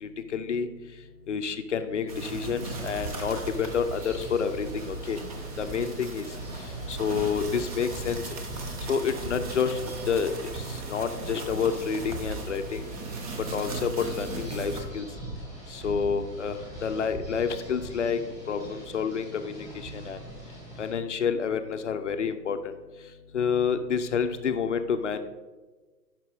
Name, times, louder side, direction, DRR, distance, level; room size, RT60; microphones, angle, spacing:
voice 1, 0.0-0.7 1.3-5.2 5.6-6.3 6.9-8.2 8.9-9.8 10.1-12.9 13.5-15.1 15.7-18.2 18.5-20.2 20.8-22.7 23.3-25.2, left 6 dB, 50° left, 9 dB, 0.6 m, -29 dB
sound 1, 2.1-14.8, right 3 dB, 25° right, 0.7 m, -37 dB
sound 2, 2.6-20.9, right 1 dB, 5° right, 1.9 m, -42 dB
10.0 x 5.9 x 3.5 m, 1.3 s
figure-of-eight pair, 125°, 49 cm